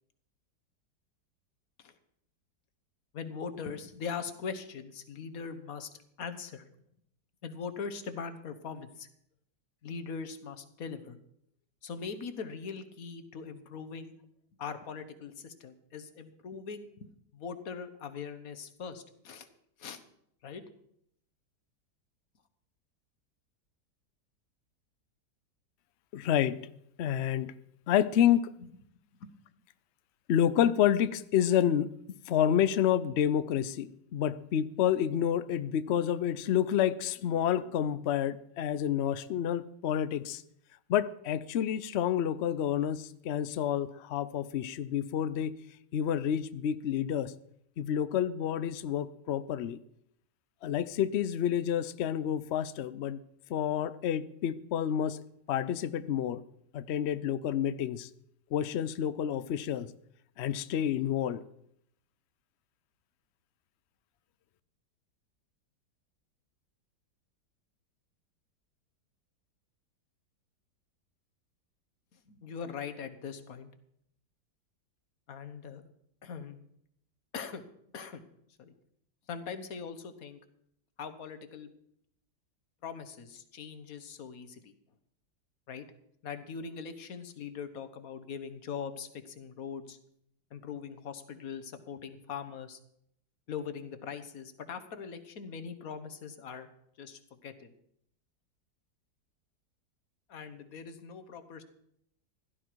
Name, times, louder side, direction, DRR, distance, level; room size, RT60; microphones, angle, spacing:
voice 1, 3.1-5.9 6.2-6.6 7.4-9.1 9.8-11.2 11.8-14.2 14.6-16.9 17.3-19.5 19.8-20.0 20.4-20.6 29.2-29.3 72.3-73.7 75.3-75.8 76.2-76.7 77.3-77.6 77.9-78.2 78.6-78.7 79.3-80.4 81.0-81.7 82.8-84.7 85.7-85.9 86.2-90.0 90.5-92.8 93.5-96.7 97.0-97.7 100.3-101.6, left 6 dB, 55° left, 10 dB, 1.5 m, -41 dB
voice 2, 26.1-26.7 27.0-27.5 27.9-28.5 30.3-40.4 40.9-45.6 45.9-47.3 47.8-49.8 50.6-53.2 53.5-55.2 55.5-56.4 56.7-58.1 58.5-59.9 60.4-61.4, left 10 dB, 85° left, 14 dB, 0.5 m, -29 dB
16.0 x 12.0 x 4.6 m, 0.71 s
omnidirectional pair, 1.9 m